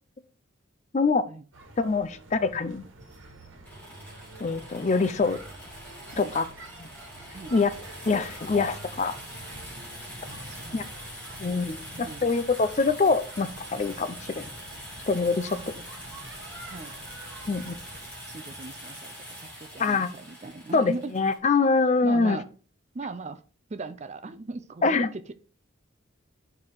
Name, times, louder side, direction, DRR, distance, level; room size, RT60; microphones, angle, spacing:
voice 1, 0.9-1.2 1.8-2.8 4.4-5.4 6.2-6.4 7.5-7.7 8.1-9.2 10.7-10.8 11.4-14.4 15.1-15.6 17.5-17.8 19.8-20.1 20.7-22.4 24.8-25.1, left 4 dB, 35° left, 13 dB, 0.4 m, -24 dB
sound 1, 1.5-18.1, right 2 dB, 75° right, 1.5 m, -47 dB
sound 2, 3.6-21.4, equal, 10° left, 2.9 m, -43 dB
voice 2, 10.2-10.9 11.9-12.2 15.4-15.8 16.7-16.9 17.5-17.6 18.3-19.1 19.4-21.2 22.0-22.5 22.9-23.4 23.7-25.3, right 3 dB, 35° right, 11 dB, 0.4 m, -39 dB
4.9 x 4.7 x 5.5 m, 0.39 s
head